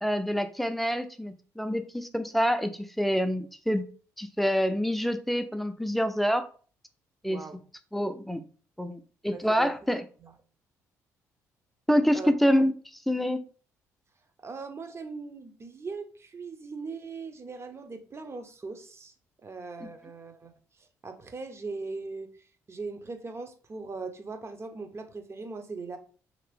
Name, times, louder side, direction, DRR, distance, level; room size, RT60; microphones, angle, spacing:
voice 1, 0.0-3.8 4.2-6.5 7.2-7.4 7.9-8.4 8.8-10.0 11.9-12.7 13.1-13.4, equal, ahead, 0.5 m, -26 dB
voice 2, 7.2-7.6 9.3-9.7 10.2-10.3 12.1-12.3 14.4-19.1 19.4-20.5 20.8-22.3 22.7-26.0, right 4 dB, 35° right, 0.8 m, -39 dB
3.2 x 2.9 x 3.3 m
hypercardioid pair, 50°, 8 cm